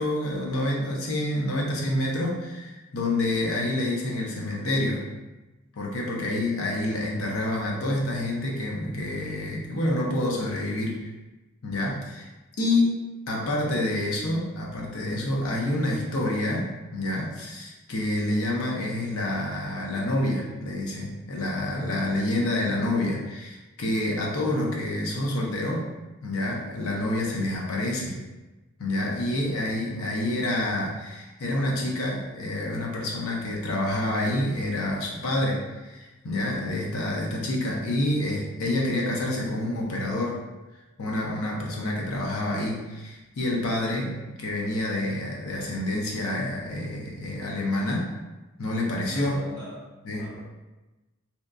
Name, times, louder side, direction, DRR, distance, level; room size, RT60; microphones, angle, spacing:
voice 1, 0.0-5.0 5.8-11.1 11.6-12.3 12.6-25.9 26.2-28.2 28.8-40.4 41.0-48.1 48.6-49.3 50.0-50.3, left 1 dB, 90° left, -2 dB, 0.6 m, -28 dB
voice 2, 6.0-6.5 29.2-29.6 49.1-50.4, left 1 dB, 20° left, -14 dB, 0.7 m, -43 dB
2.8 x 2.2 x 2.4 m, 1.1 s
head